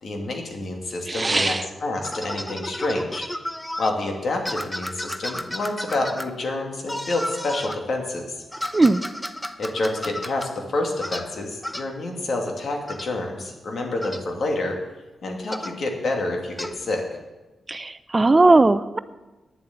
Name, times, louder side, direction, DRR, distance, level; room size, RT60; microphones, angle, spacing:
voice 1, 0.0-3.2 3.8-8.3 9.6-14.8 15.2-17.1, left 2 dB, 65° left, 2 dB, 2.6 m, -28 dB
voice 2, 1.1-1.7 8.7-9.0 17.7-19.0, right 2 dB, 30° right, 14 dB, 0.6 m, -18 dB
wah wah toy, 2.0-3.9 4.5-6.3 6.9-7.8 8.5-10.5 11.0-11.3 11.6-11.9 12.9-13.1 14.0-14.2 15.5-15.8 16.6-16.7, left 1 dB, 10° left, 0.9 m, -33 dB
10.0 x 7.4 x 9.2 m, 1.1 s
cardioid pair, 60°, 0 cm